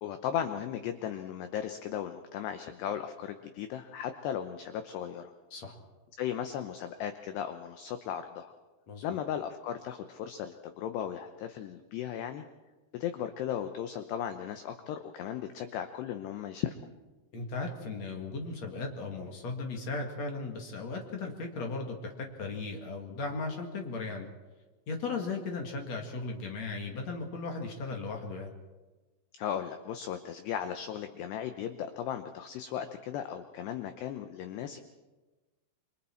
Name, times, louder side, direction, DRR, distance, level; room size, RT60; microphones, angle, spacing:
voice 1, 0.0-5.3 6.2-8.5 9.0-12.4 12.9-16.7 29.4-34.8, left 9 dB, 80° left, 8 dB, 2.4 m, -36 dB
voice 2, 8.9-9.2 17.3-24.3 24.9-28.5, left 3 dB, 60° left, 2 dB, 1.8 m, -36 dB
28.5 x 24.0 x 4.5 m, 1.2 s
omnidirectional pair, 5.9 m